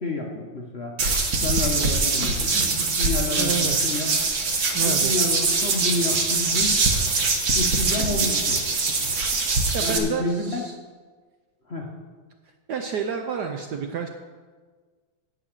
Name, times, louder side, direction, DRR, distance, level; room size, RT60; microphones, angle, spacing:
voice 1, 0.0-0.9 1.4-4.1 4.8-6.8 7.5-8.6 9.8-10.6 11.7-11.9, left 2 dB, 45° left, -1 dB, 0.9 m, -29 dB
sound 1, 1.0-10.0, right 3 dB, 50° right, 1.5 m, -23 dB
voice 2, 3.4-3.8 4.7-5.2 9.7-10.7 12.7-14.1, right 6 dB, 65° right, 4 dB, 1.0 m, -29 dB
11.0 x 5.6 x 8.8 m, 1.5 s
omnidirectional pair, 2.4 m